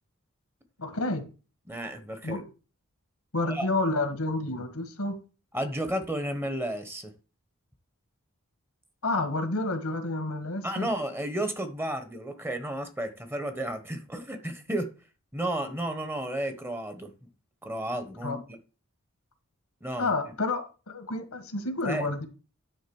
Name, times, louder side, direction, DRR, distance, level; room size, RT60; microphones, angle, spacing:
voice 1, 0.8-1.2 2.2-2.4 3.3-5.2 9.0-10.9 18.2-18.4 20.0-22.3, left 2 dB, 80° left, 1.6 m, -29 dB
voice 2, 1.7-2.4 3.5-3.7 5.5-7.1 10.6-14.9 15.3-17.1 17.6-18.6 19.8-20.1 21.9-22.1, right 1 dB, 10° right, 1.1 m, -32 dB
10.0 x 3.8 x 7.1 m
head